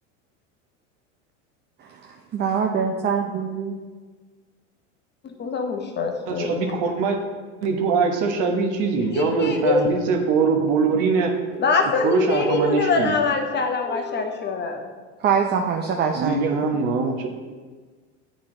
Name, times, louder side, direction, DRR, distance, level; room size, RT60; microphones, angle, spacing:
voice 1, 1.8-3.7 15.2-16.6, right 6 dB, 30° right, 3 dB, 0.5 m, -24 dB
voice 2, 5.2-6.7 9.1-9.8 11.5-14.8, left 4 dB, 30° left, 4 dB, 0.8 m, -24 dB
voice 3, 6.3-7.2 7.6-11.3 12.0-13.1 16.1-17.3, right 5 dB, 55° right, 3 dB, 1.2 m, -22 dB
8.6 x 4.0 x 3.8 m, 1.4 s
hypercardioid pair, 95°, 36 cm